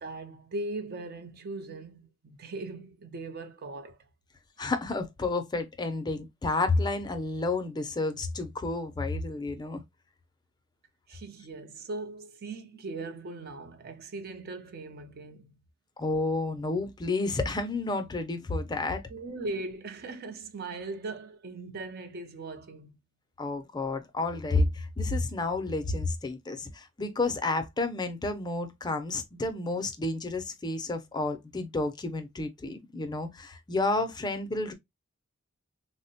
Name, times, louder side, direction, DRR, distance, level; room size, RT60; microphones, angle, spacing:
voice 1, 0.0-4.0 11.1-15.6 19.1-23.0, right 2 dB, 50° right, 0.5 m, -39 dB
voice 2, 4.6-9.8 16.0-19.0 23.4-34.7, left 2 dB, 20° left, 0.4 m, -30 dB
3.6 x 2.1 x 2.6 m
head